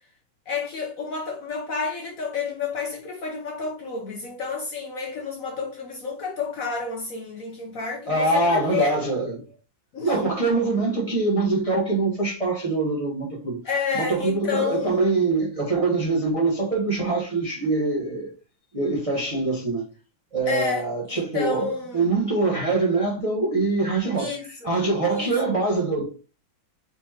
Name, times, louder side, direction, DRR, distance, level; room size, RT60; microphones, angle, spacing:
voice 1, 0.5-9.0 9.9-10.2 13.6-15.0 20.5-20.8 21.1-22.1 24.2-24.8 25.1-25.3, left 5 dB, 55° left, 1.1 m, -30 dB
voice 2, 8.1-9.4 10.0-13.6 13.9-18.3 18.7-19.8 20.3-26.0, right 3 dB, 25° right, 0.8 m, -24 dB
4.4 x 4.3 x 2.8 m
omnidirectional pair, 2.1 m